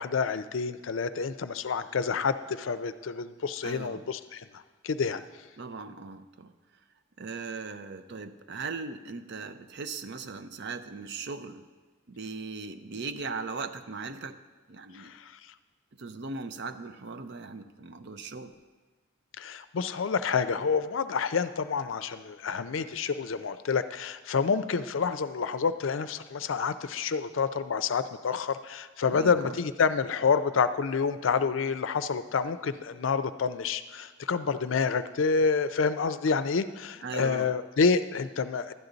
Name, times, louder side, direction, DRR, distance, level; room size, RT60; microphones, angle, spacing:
voice 1, 0.0-5.2 14.9-15.3 19.4-38.7, left 5 dB, 70° left, 12 dB, 0.5 m, -28 dB
voice 2, 3.6-4.0 5.6-6.5 7.2-11.6 12.1-14.4 14.7-15.1 16.0-18.5 29.1-29.6 37.0-37.5, right 4 dB, 60° right, 10 dB, 0.6 m, -38 dB
12.0 x 9.5 x 3.9 m, 1.4 s
head